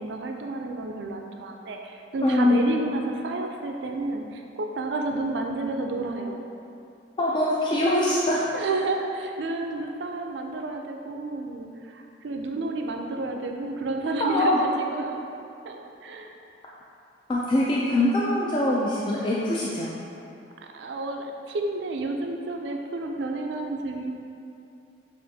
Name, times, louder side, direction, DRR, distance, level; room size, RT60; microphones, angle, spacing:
voice 1, 0.0-6.4 8.5-15.2 15.6-16.3 20.7-24.1, right 2 dB, 70° right, 3 dB, 0.4 m, -31 dB
voice 2, 2.2-2.6 7.2-8.4 14.2-14.6 17.3-19.9, left 1 dB, 25° left, -5 dB, 0.3 m, -23 dB
6.9 x 2.5 x 2.7 m, 2.6 s
head